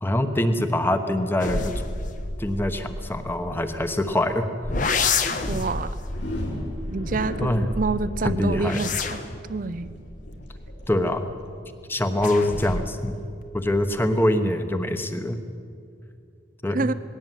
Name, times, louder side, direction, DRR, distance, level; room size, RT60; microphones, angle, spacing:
voice 1, 0.0-1.8 2.4-4.5 7.4-7.7 8.2-8.9 10.9-11.3 11.9-13.2 13.5-15.4 16.6-16.9, left 1 dB, 10° left, 7 dB, 1.1 m, -24 dB
sound 1, 1.4-4.1 4.6-7.7 8.3-11.4 12.2-13.1 13.4-14.0, left 4 dB, 40° left, 1.1 m, -30 dB
voice 2, 5.5-5.9 6.9-9.2 9.5-9.9 16.7-16.9, right 3 dB, 40° right, 14 dB, 0.5 m, -27 dB
sound 2, 5.9-11.8, equal, 60° left, 4.0 m, -34 dB
20.0 x 17.0 x 9.2 m, 2.4 s
head